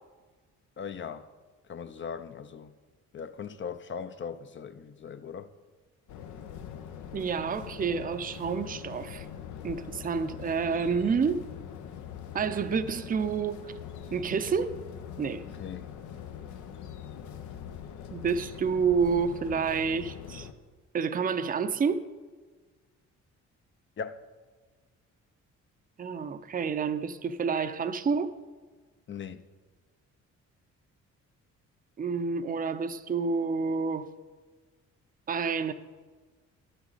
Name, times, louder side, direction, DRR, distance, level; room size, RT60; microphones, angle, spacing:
voice 1, 0.8-1.3 1.7-2.7 3.1-5.5 15.6-15.9 24.0-24.2 29.1-29.4, left 6 dB, 40° left, 0.6 m, -39 dB
sound 1, 6.1-20.5, left 8 dB, 80° left, 0.8 m, -43 dB
voice 2, 7.1-9.3 9.6-11.5 12.3-13.7 14.1-14.7 15.2-15.4 18.1-20.5 20.9-22.1 26.0-28.4 32.0-34.1 35.3-35.7, right 5 dB, 30° right, 0.5 m, -29 dB
11.0 x 8.9 x 4.1 m
cardioid pair, 90°, 30 cm